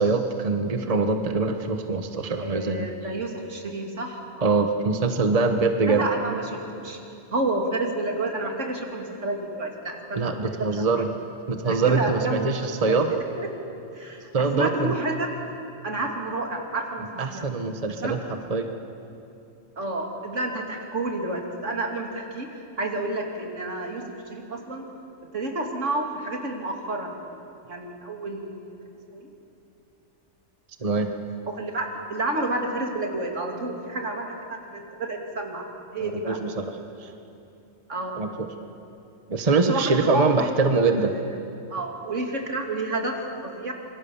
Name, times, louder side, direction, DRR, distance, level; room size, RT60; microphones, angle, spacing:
voice 1, 0.0-2.9 4.4-6.1 10.1-11.1 11.5-13.1 14.3-14.9 17.2-18.2 18.5-18.7 30.8-31.1 36.0-36.8 37.0-37.1 38.2-38.3 39.3-41.1, right 4 dB, 30° right, 6 dB, 1.2 m, -23 dB
voice 2, 2.4-4.7 5.9-7.0 7.3-11.0 11.5-13.5 13.9-15.3 15.8-17.5 17.9-18.2 19.8-24.8 25.3-27.4 27.7-28.6 29.1-29.3 31.5-35.7 35.9-36.4 37.9-38.3 39.7-40.3 40.7-41.3 41.7-43.7, right 2 dB, 75° right, 2 dB, 3.0 m, -30 dB
26.5 x 23.5 x 7.1 m, 2.8 s
omnidirectional pair, 1.3 m